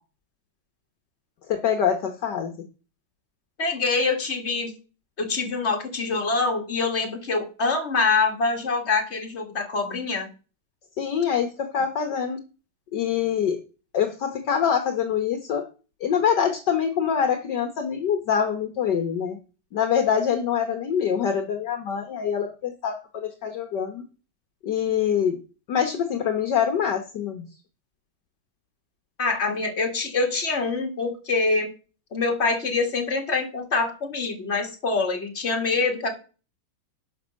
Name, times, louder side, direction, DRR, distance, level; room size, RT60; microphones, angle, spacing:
voice 1, 1.5-2.5 11.0-12.4 12.9-13.6 13.9-15.7 16.0-19.4 19.7-24.0 24.6-25.4 25.7-27.4, left 8 dB, 60° left, 5 dB, 1.6 m, -25 dB
voice 2, 3.6-4.7 5.2-10.3 29.2-31.7 32.1-36.1, left 3 dB, 35° left, 2 dB, 2.3 m, -25 dB
11.0 x 6.2 x 6.3 m, 0.36 s
omnidirectional pair, 2.2 m